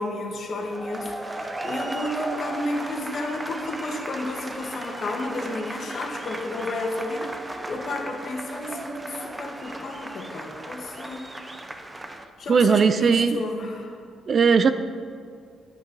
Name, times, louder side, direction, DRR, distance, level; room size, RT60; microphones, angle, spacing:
voice 1, 0.0-7.4 7.7-11.3 12.4-14.0, left 2 dB, 55° left, 2 dB, 1.6 m, -32 dB
sound 1, 0.6-12.2, right 1 dB, 15° right, 0.8 m, -35 dB
voice 2, 12.5-13.4 14.3-14.7, right 5 dB, 45° right, 11 dB, 0.5 m, -18 dB
9.8 x 9.0 x 5.4 m, 2.2 s
cardioid pair, 90°, 0 cm